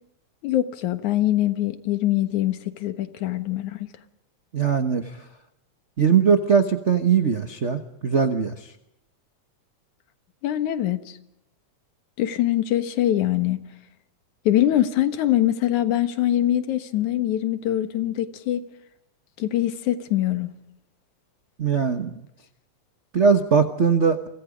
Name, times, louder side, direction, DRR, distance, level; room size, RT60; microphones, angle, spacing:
voice 1, 0.4-3.9 10.4-11.2 12.2-13.6 14.5-18.6 19.4-20.5, left 13 dB, 85° left, 2.8 m, -23 dB
voice 2, 4.5-5.1 6.0-8.7 21.6-22.1 23.1-24.2, right 6 dB, 75° right, 0.6 m, -20 dB
30.0 x 25.0 x 5.2 m
omnidirectional pair, 3.3 m